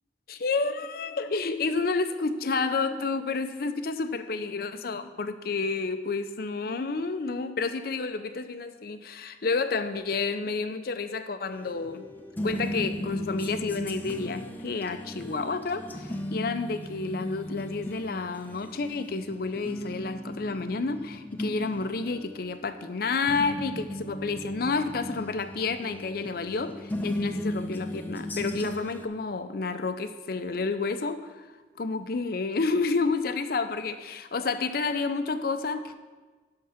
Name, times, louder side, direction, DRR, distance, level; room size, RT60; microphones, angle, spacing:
voice 1, 0.3-12.1 12.4-31.4 31.8-35.9, left 4 dB, 55° left, 10 dB, 0.5 m, -30 dB
sound 1, 11.5-29.1, left 1 dB, 10° left, 0.6 m, -37 dB
11.0 x 3.8 x 5.7 m, 1.3 s
head